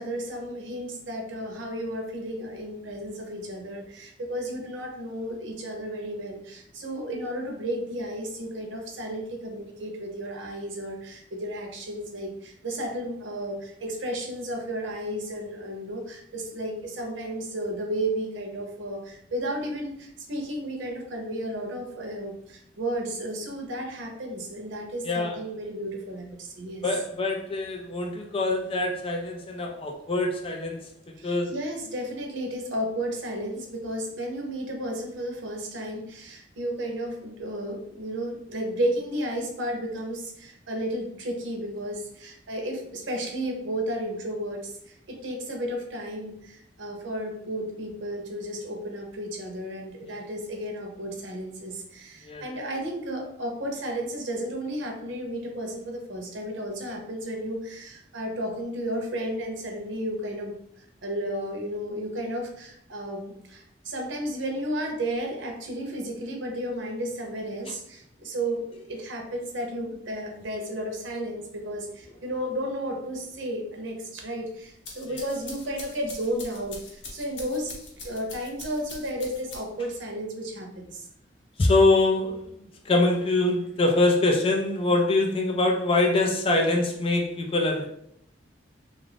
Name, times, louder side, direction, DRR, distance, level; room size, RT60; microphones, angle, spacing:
voice 1, 0.0-26.8 31.2-77.7 78.0-81.1, right 1 dB, 90° right, 2 dB, 0.7 m, -33 dB
voice 2, 25.1-25.4 26.8-30.9 31.2-31.5 52.3-52.7 81.6-82.4 82.9-87.9, left 2 dB, 30° left, 1 dB, 0.4 m, -24 dB
sound 1, 74.6-79.9, left 2 dB, 75° left, 0.8 m, -43 dB
2.6 x 2.5 x 3.3 m, 0.72 s
head